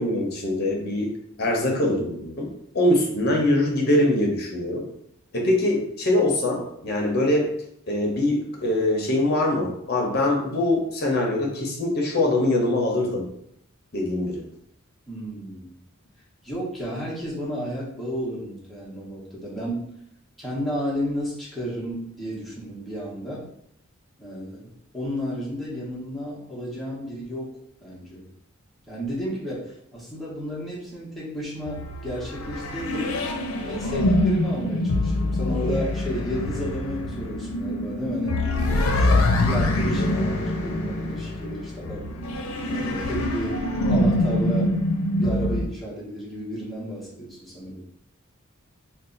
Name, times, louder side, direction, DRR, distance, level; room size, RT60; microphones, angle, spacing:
voice 1, 0.0-4.9 5.3-7.5 7.9-13.3 13.9-14.4, left 1 dB, 50° left, 0 dB, 0.8 m, -23 dB
voice 2, 15.1-15.7 16.4-19.9 20.4-23.5 24.2-27.5 27.8-28.3 28.9-33.1 33.6-38.4 39.0-42.1 42.7-43.6 43.9-44.7 45.1-47.9, equal, ahead, -8 dB, 0.9 m, -32 dB
sound 1, 31.7-45.6, left 1 dB, 75° left, 0.5 m, -24 dB
2.7 x 2.3 x 3.8 m, 0.75 s
head